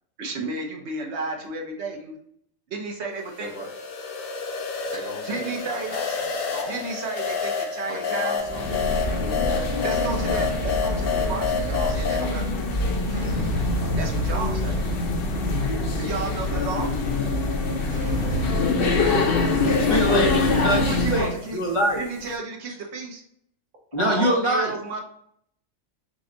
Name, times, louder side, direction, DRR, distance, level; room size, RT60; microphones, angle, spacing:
voice 1, 0.2-2.2 2.7-3.5 5.3-5.9 6.7-8.4 9.8-12.5 14.0-14.8 16.0-16.9 20.8-21.6 22.0-23.2 24.0-25.0, right 3 dB, 60° right, 1 dB, 1.1 m, -32 dB
sound 1, 3.2-12.3, left 5 dB, 85° left, 1.2 m, -29 dB
voice 2, 4.9-6.9 7.9-9.5 18.4-18.6 19.0-21.1, right 1 dB, 75° right, -2 dB, 1.7 m, -38 dB
sound 2, 8.4-21.3, left 3 dB, 50° left, 0.8 m, -25 dB
sound 3, 13.1-18.6, equal, 40° right, 1.4 m, -31 dB
voice 3, 19.6-22.1 23.9-24.7, equal, 25° left, -2 dB, 0.9 m, -24 dB
5.2 x 2.3 x 3.8 m, 0.68 s
omnidirectional pair, 1.4 m